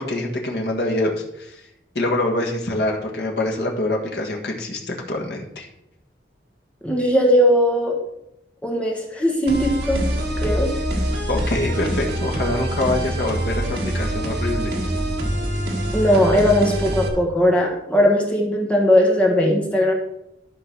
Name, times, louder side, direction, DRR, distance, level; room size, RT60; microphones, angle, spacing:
voice 1, 0.0-1.6 1.9-5.7 11.3-14.7, left 1 dB, 65° left, 0 dB, 1.5 m, -25 dB
voice 2, 6.8-8.0 8.6-10.0 10.4-10.7 15.9-19.9, equal, 5° left, -1 dB, 1.4 m, -18 dB
sound 1, 9.5-17.1, equal, 70° right, 1.7 m, -25 dB
11.5 x 3.9 x 6.1 m, 0.82 s
head